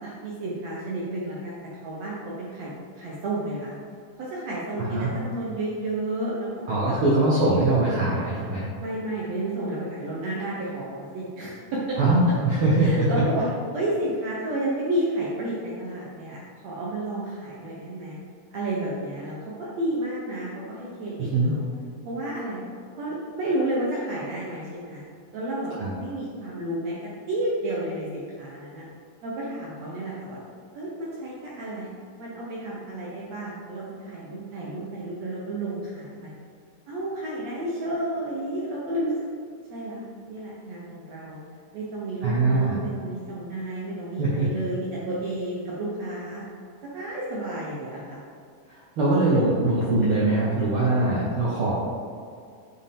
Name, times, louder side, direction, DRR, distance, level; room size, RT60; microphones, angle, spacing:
voice 1, 0.0-1.6 1.8-3.7 4.2-6.9 8.8-12.0 12.8-13.4 13.7-18.2 18.5-21.7 22.0-22.6 23.0-25.0 25.3-26.9 27.3-28.8 29.2-30.4 30.7-31.9 32.2-36.3 36.9-39.1 39.7-41.4 41.7-46.4 46.9-48.2, right 1 dB, 70° right, -5 dB, 1.7 m, -31 dB
voice 2, 6.7-8.7 12.0-13.1 21.2-21.5 25.8-25.9 42.2-42.8 44.2-44.5 48.7-51.7, right 2 dB, 85° right, -7 dB, 1.2 m, -22 dB
8.8 x 4.5 x 3.6 m, 2.3 s
omnidirectional pair, 4.0 m